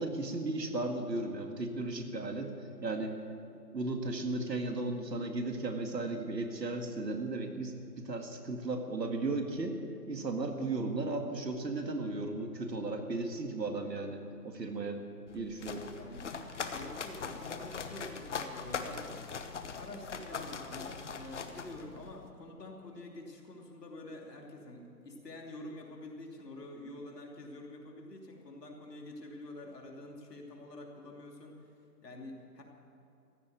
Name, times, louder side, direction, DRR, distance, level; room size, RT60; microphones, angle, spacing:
voice 1, 0.0-2.5 2.8-3.2 3.7-9.8 10.1-15.0 15.3-15.9, right 2 dB, 80° right, 5 dB, 2.1 m, -35 dB
sound 1, 15.3-22.3, left 5 dB, 45° left, 1.0 m, -41 dB
voice 2, 16.7-19.3 19.8-31.7 32.0-32.6, left 1 dB, 75° left, 1 dB, 3.0 m, -47 dB
15.0 x 8.5 x 9.3 m, 2.7 s
figure-of-eight pair, 155°, 49 cm